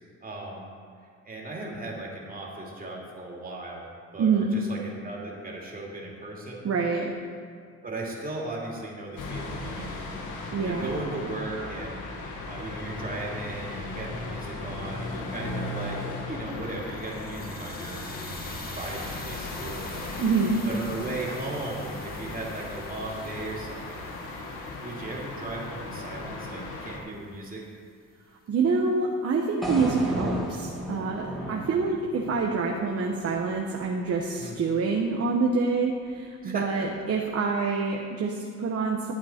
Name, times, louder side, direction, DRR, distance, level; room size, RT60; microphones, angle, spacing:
voice 1, 0.2-0.7 1.2-6.7 7.8-10.0 10.4-16.0 16.3-18.5 18.7-20.1 20.7-24.1 24.8-27.6 31.3-31.7 34.4-34.6 36.4-37.0, right 2 dB, 30° right, -3 dB, 2.7 m, -37 dB
voice 2, 4.2-4.5 6.6-7.1 10.5-11.0 20.2-20.7 28.5-39.1, right 4 dB, 50° right, 0 dB, 1.1 m, -26 dB
sound 1, 9.2-27.0, left 2 dB, 85° left, 1.6 m, -37 dB
sound 2, 16.5-26.7, left 2 dB, 30° left, 1.9 m, -44 dB
sound 3, 29.6-33.7, equal, ahead, 2.2 m, -34 dB
12.0 x 8.4 x 4.4 m, 2.2 s
cardioid pair, 90°, 30 cm